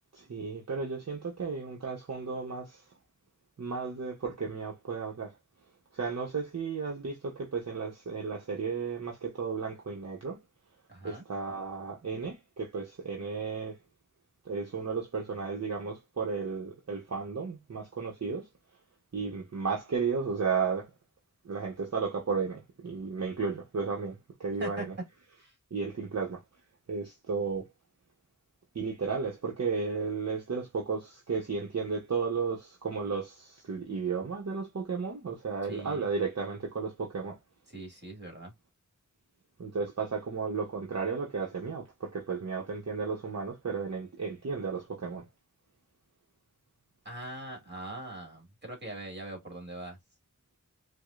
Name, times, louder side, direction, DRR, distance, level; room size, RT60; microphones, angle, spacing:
voice 1, 0.1-2.8 3.6-5.3 5.9-10.4 11.0-13.8 14.4-18.5 19.1-20.9 21.4-24.9 25.7-26.4 26.9-27.7 28.7-37.4 39.6-45.3, right 5 dB, 60° right, 0.9 m, -34 dB
voice 2, 10.9-11.2 24.6-24.8 25.4-25.5 35.7-36.1 37.7-38.5 47.0-50.0, right 2 dB, 35° right, 1.8 m, -41 dB
4.7 x 2.1 x 2.4 m
wide cardioid pair, 75°, 30 cm